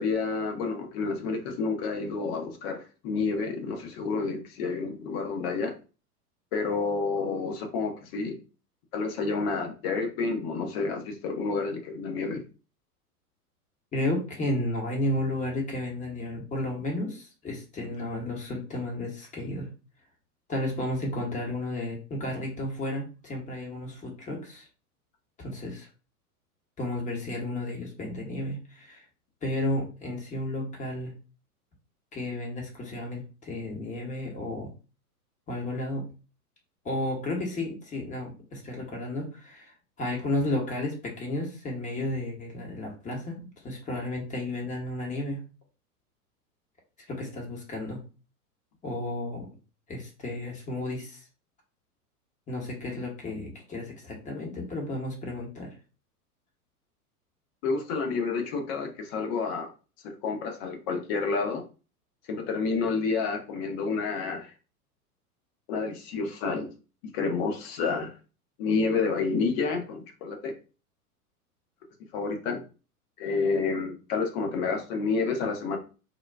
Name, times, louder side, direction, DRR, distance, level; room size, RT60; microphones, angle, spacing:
voice 1, 0.0-5.7 6.5-8.3 8.9-12.4 57.6-59.7 60.0-61.6 62.3-64.5 65.7-66.7 67.1-68.1 68.6-70.5 72.1-72.6 73.2-75.8, left 4 dB, 40° left, 4 dB, 0.9 m, -29 dB
voice 2, 13.9-19.7 20.5-24.7 25.4-25.9 26.8-29.1 29.4-31.1 32.1-34.7 35.5-36.0 36.8-39.7 40.0-45.4 47.1-48.0 48.8-49.5 49.9-51.3 52.5-55.7, left 1 dB, 15° left, 0 dB, 1.0 m, -32 dB
3.8 x 2.2 x 2.3 m, 0.34 s
figure-of-eight pair, 95°, 46 cm